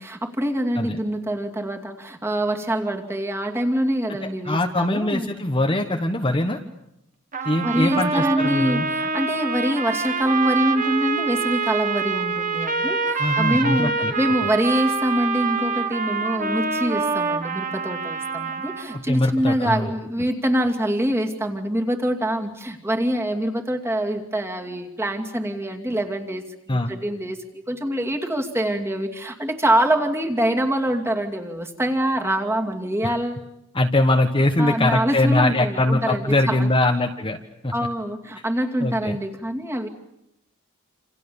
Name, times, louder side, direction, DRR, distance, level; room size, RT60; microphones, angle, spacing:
voice 1, 0.0-5.3 7.4-33.4 34.6-36.7 37.7-39.9, right 1 dB, 10° right, 2 dB, 2.5 m, -25 dB
voice 2, 4.4-6.6 7.4-8.9 13.2-14.1 18.9-19.9 26.7-26.9 33.7-37.4 37.6-37.7 38.8-39.2, left 1 dB, 25° left, 4 dB, 1.3 m, -22 dB
sound 1, 7.3-19.0, right 4 dB, 35° right, 1.7 m, -26 dB
28.0 x 28.0 x 7.1 m, 0.83 s
head